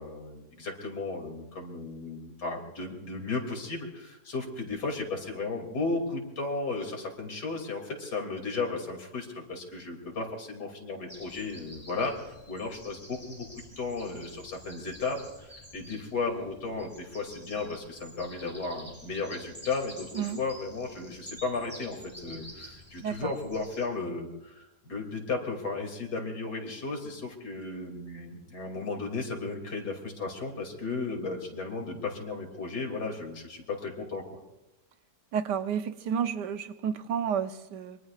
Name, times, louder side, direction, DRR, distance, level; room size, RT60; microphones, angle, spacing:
voice 1, 0.0-13.5 13.8-34.2, left 3 dB, 75° left, 2 dB, 3.3 m, -35 dB
sound 1, 11.1-23.8, equal, 5° right, 4.7 m, -49 dB
voice 2, 23.0-23.3 35.3-38.0, right 8 dB, 85° right, 10 dB, 1.5 m, -31 dB
25.5 x 23.0 x 2.4 m, 0.95 s
omnidirectional pair, 1.8 m